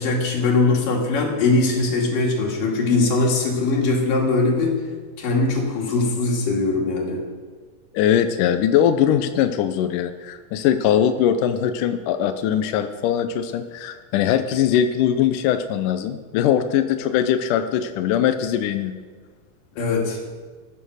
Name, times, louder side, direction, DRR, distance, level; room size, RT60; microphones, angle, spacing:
voice 1, 0.0-4.7 5.2-7.2 19.8-20.2, left 3 dB, 65° left, 0 dB, 3.8 m, -21 dB
voice 2, 7.9-18.9, left 9 dB, 80° left, 8 dB, 1.9 m, -21 dB
14.5 x 10.0 x 6.4 m, 1.5 s
omnidirectional pair, 4.4 m